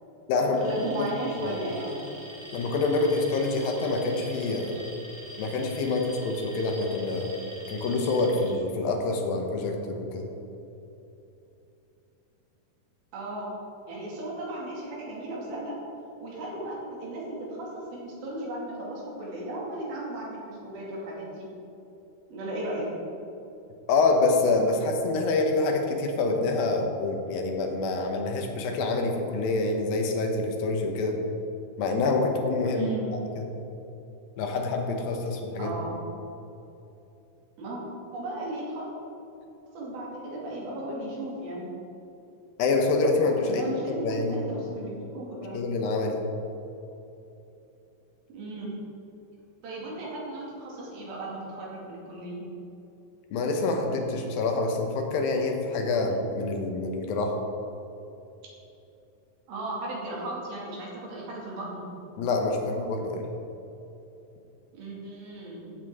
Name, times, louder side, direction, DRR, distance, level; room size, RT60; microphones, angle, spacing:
voice 1, 0.4-2.0 13.1-13.5 13.9-15.8 16.2-21.5 22.3-22.9 32.7-33.1 35.6-36.0 37.6-37.8 38.1-38.9 39.7-41.7 43.5-45.6 48.3-48.7 49.6-52.5 59.5-61.8 64.7-65.8, right 1 dB, 85° right, -4 dB, 4.2 m, -35 dB
Alarm, 0.5-8.5, right 1 dB, 60° right, 0.6 m, -45 dB
voice 2, 2.5-4.8 5.4-7.3 7.7-10.3 23.9-31.2 31.8-32.9 33.4-33.5 34.4-35.7 42.6-44.4 45.5-46.2 53.3-57.4 62.2-63.3, left 3 dB, 80° left, 3 dB, 2.8 m, -26 dB
15.0 x 7.8 x 3.7 m, 2.9 s
omnidirectional pair, 4.2 m